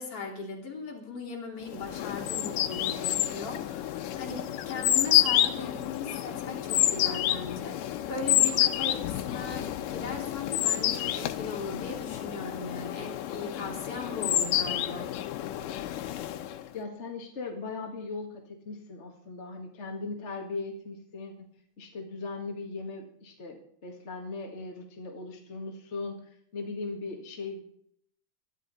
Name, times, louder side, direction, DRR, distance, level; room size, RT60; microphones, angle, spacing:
voice 1, 0.0-15.1, left 4 dB, 45° left, 0 dB, 4.1 m, -38 dB
sound 1, 1.7-16.7, left 12 dB, 90° left, 2.5 m, -29 dB
voice 2, 16.7-21.3 21.8-27.7, left 3 dB, 30° left, 1 dB, 1.6 m, -38 dB
21.0 x 12.5 x 4.2 m, 0.67 s
omnidirectional pair, 3.7 m